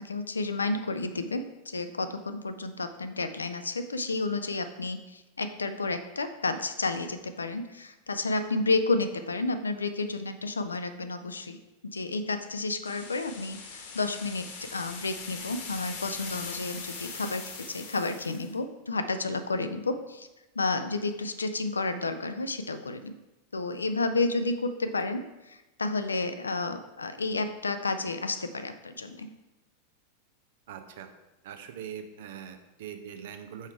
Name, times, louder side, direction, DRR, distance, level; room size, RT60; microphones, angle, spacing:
voice 1, 0.0-11.6 11.8-20.3 20.6-23.1 23.5-29.3, left 3 dB, 75° left, 9 dB, 0.4 m, -31 dB
sound 1, 12.8-18.5, left 4 dB, 55° left, 1.2 m, -41 dB
voice 2, 30.7-31.1 31.4-33.7, right 8 dB, 55° right, 7 dB, 0.6 m, -42 dB
5.6 x 4.6 x 4.5 m, 1.0 s
figure-of-eight pair, 90°, 0 cm